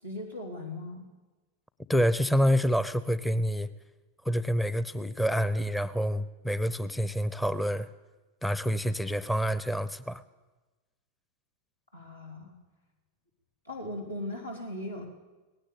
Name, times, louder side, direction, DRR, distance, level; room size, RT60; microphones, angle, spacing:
voice 1, 0.0-1.1 11.9-12.6 13.6-15.1, left 1 dB, 85° left, -1 dB, 3.8 m, -38 dB
voice 2, 1.9-3.7 4.2-7.9 8.4-10.2, equal, 5° left, 15 dB, 0.7 m, -27 dB
19.0 x 16.5 x 8.5 m, 1.2 s
figure-of-eight pair, 90°, 0 cm